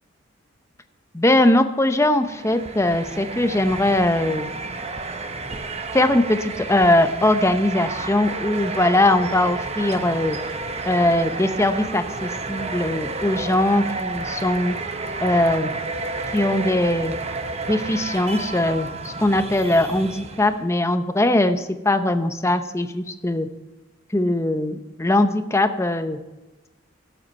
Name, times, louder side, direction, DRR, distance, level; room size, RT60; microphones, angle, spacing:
voice 1, 1.1-4.5 5.9-10.4 10.8-14.8 15.2-15.7 16.3-17.1 17.7-23.5 24.1-26.2, left 1 dB, 15° left, 8 dB, 0.8 m, -20 dB
sound 1, 2.2-20.6, right 3 dB, 35° right, 0.8 m, -31 dB
16.5 x 7.9 x 4.3 m, 1.1 s
head